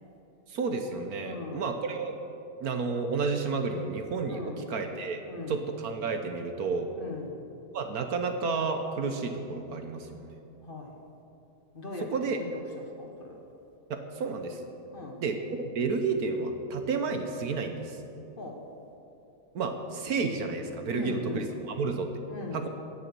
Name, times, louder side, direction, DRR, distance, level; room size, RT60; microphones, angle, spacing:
voice 1, 0.5-2.1 2.6-4.4 4.7-5.2 5.5-6.9 7.7-10.3 12.1-12.4 13.9-14.6 15.2-18.0 19.5-22.1 22.5-22.7, right 4 dB, 65° right, 6 dB, 1.3 m, -31 dB
voice 2, 1.2-1.8 4.3-4.8 5.3-5.6 7.0-7.4 10.6-11.0 11.7-12.3 12.8-13.4 14.9-15.2 18.4-18.6 20.9-21.6 22.3-22.7, left 3 dB, 35° left, 1 dB, 1.5 m, -40 dB
18.0 x 7.0 x 6.9 m, 2.9 s
omnidirectional pair, 1.8 m